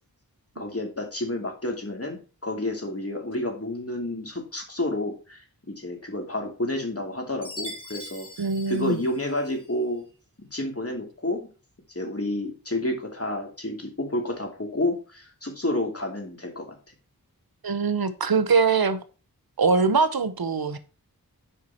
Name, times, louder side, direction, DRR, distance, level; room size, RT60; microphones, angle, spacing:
voice 1, 0.6-10.0 10.5-11.5 11.9-16.7, left 1 dB, 40° left, 2 dB, 2.7 m, -30 dB
Chime, 7.4-9.7, left 1 dB, 15° left, 3.0 m, -41 dB
voice 2, 8.4-9.0 17.6-19.0 19.6-20.8, right 4 dB, 75° right, 12 dB, 0.9 m, -22 dB
9.2 x 5.0 x 4.3 m, 0.34 s
wide cardioid pair, 40°, 37 cm